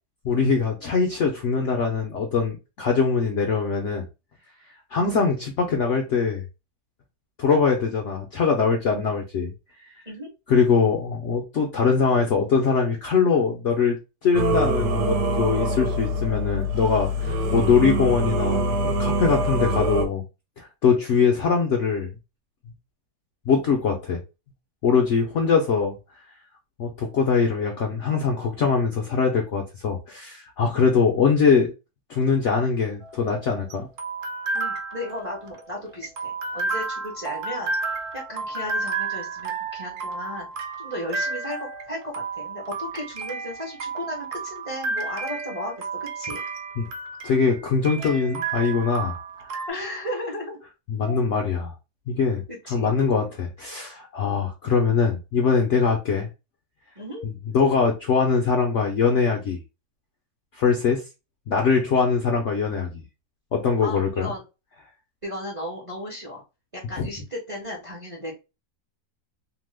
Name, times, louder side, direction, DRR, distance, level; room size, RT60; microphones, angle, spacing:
voice 1, 0.2-4.1 4.9-6.4 7.4-9.5 9.9-10.0 10.5-20.2 20.6-22.1 23.5-24.2 24.8-26.0 26.8-31.7 32.1-33.9 46.8-46.9 47.2-49.5 50.9-51.7 52.1-52.4 52.7-56.3 57.2-59.6 60.5-61.0 61.5-63.0 63.5-64.3 67.0-67.1, left 5 dB, 70° left, 2 dB, 0.7 m, -22 dB
Singing / Musical instrument, 14.3-20.1, right 1 dB, 90° right, 1.2 m, -24 dB
sound 1, 33.0-49.7, right 4 dB, 70° right, 1.0 m, -32 dB
voice 2, 34.5-37.7 38.1-40.5 40.8-46.4 49.7-50.6 51.0-51.2 52.5-52.9 57.0-57.2 63.8-64.4 65.2-66.4 66.7-68.3, left 1 dB, 30° right, -2 dB, 0.6 m, -35 dB
2.9 x 2.1 x 3.2 m, 0.27 s
omnidirectional pair, 1.8 m